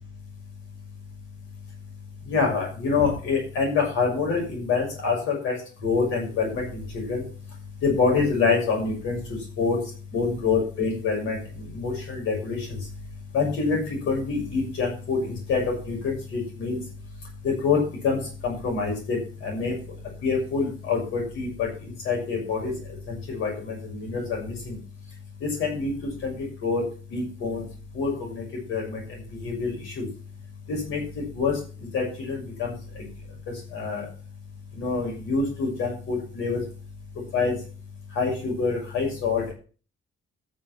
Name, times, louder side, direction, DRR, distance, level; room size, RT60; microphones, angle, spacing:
voice 1, 2.3-5.5 5.8-7.2 7.8-9.2 9.6-9.8 10.1-12.8 13.3-13.8 14.0-16.8 17.4-17.8 18.0-19.7 20.2-21.7 22.0-22.7 23.1-24.8 25.4-25.9 26.2-26.3 26.6-26.8 27.1-27.6 27.9-28.4 28.7-29.0 29.4-30.1 30.7-31.0 31.3-31.5 31.9-32.7 33.7-34.0 34.8-36.6 37.3-37.5 38.2-39.5, left 4 dB, 90° left, 0 dB, 6.3 m, -26 dB
13.0 x 5.3 x 7.6 m, 0.37 s
cardioid pair, 90°, 20 cm